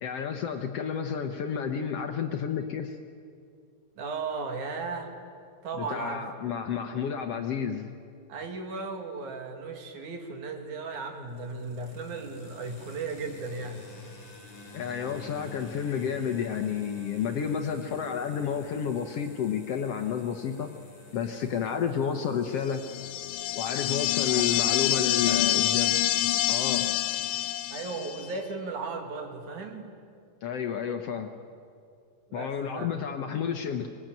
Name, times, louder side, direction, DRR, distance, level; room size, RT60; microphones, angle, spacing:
voice 1, 0.0-3.0 5.8-7.9 14.7-20.7 21.1-22.8 23.6-26.0 26.5-26.9 30.4-31.3 32.3-33.9, left 7 dB, 65° left, 6 dB, 1.6 m, -31 dB
voice 2, 4.0-5.2 5.6-6.3 8.3-13.9 24.3-25.7 27.7-29.9 32.3-33.0, right 4 dB, 65° right, 4 dB, 3.5 m, -36 dB
sound 1, 10.9-27.7, left 2 dB, 35° left, 5.2 m, -51 dB
sound 2, 22.8-28.2, left 14 dB, 90° left, 2.4 m, -26 dB
24.5 x 20.0 x 9.0 m, 2.4 s
omnidirectional pair, 3.7 m